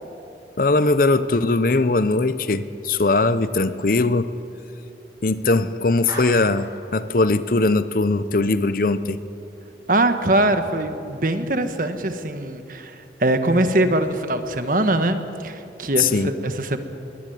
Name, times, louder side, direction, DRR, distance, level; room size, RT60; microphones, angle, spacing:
voice 1, 0.6-4.3 5.2-9.2 16.0-16.3, left 3 dB, 50° left, 13 dB, 0.7 m, -20 dB
Clapping, 6.1-6.8, right 1 dB, 20° right, 6.3 m, -34 dB
voice 2, 9.9-16.8, right 1 dB, 50° right, 8 dB, 1.4 m, -22 dB
22.0 x 19.0 x 9.3 m, 2.8 s
head